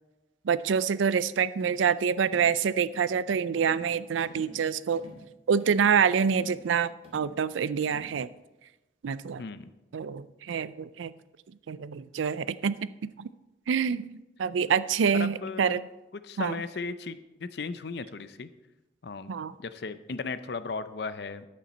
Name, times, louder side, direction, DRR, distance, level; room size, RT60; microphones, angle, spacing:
voice 1, 0.4-5.0 5.5-8.3 9.0-9.4 9.9-11.1 11.7-12.8 13.0-13.3 13.7-15.8 16.4-16.6 19.3-19.5, right 6 dB, 90° right, 16 dB, 0.4 m, -26 dB
sound 1, 1.6-1.9 2.2-2.5 2.9-3.2 3.6-3.9 4.2-4.6 4.9-5.2 5.6-5.9 6.3-6.7 7.0-7.4 7.8-8.2, equal, 30° right, 2.0 m, -49 dB
voice 2, 9.4-9.7 15.1-15.8 16.2-18.5 19.0-19.3 19.6-21.5, left 4 dB, 60° left, 13 dB, 0.5 m, -36 dB
10.5 x 8.5 x 4.2 m, 1.0 s
head